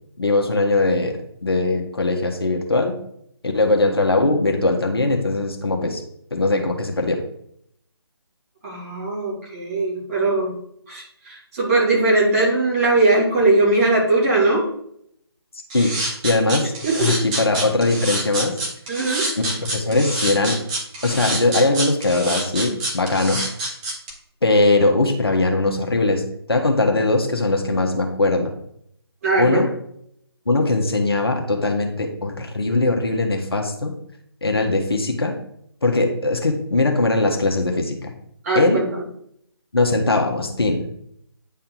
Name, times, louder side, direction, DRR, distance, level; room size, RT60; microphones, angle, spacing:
voice 1, 0.2-3.0 3.5-6.0 6.3-7.2 15.7-18.5 19.4-20.6 21.0-23.5 24.4-26.2 26.5-28.5 29.4-29.7 30.5-33.9 34.4-35.3 35.8-38.1 38.5-38.8 39.7-40.8, left 2 dB, 65° left, 2 dB, 1.4 m, -20 dB
voice 2, 8.6-10.6 10.9-14.6 16.8-17.2 18.9-19.3 29.2-29.6 38.4-39.1, right 2 dB, 35° right, -6 dB, 3.0 m, -20 dB
sound 1, 15.7-24.1, right 2 dB, 15° right, 1.1 m, -26 dB
9.3 x 4.2 x 3.9 m, 0.71 s
figure-of-eight pair, 150°, 14 cm